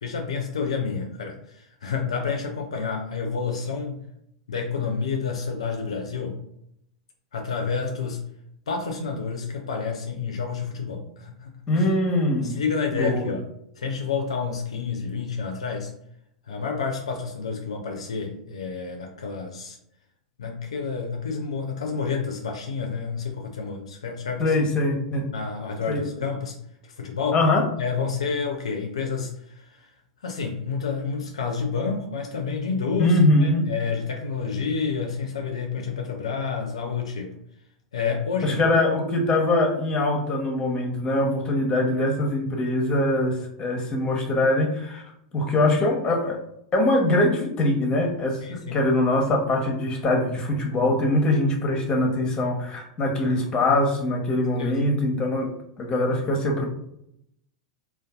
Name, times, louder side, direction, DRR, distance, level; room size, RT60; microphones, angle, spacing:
voice 1, 0.0-4.0 4.5-6.4 7.3-8.2 8.7-11.9 12.4-13.5 13.8-15.9 16.4-19.8 20.4-24.5 25.3-26.6 26.8-27.4 27.8-29.9 30.2-37.3 37.9-38.8 48.4-48.8 54.6-54.9, left 5 dB, 75° left, 2 dB, 0.4 m, -29 dB
voice 2, 11.7-12.6 12.9-13.3 24.4-25.3 25.9-26.0 27.3-27.6 33.0-33.7 38.4-45.0 45.3-46.4 46.7-48.4 48.7-55.5 55.8-56.6, left 1 dB, 25° left, 1 dB, 0.7 m, -22 dB
2.5 x 2.2 x 2.3 m, 0.75 s
hypercardioid pair, 90°, 3 cm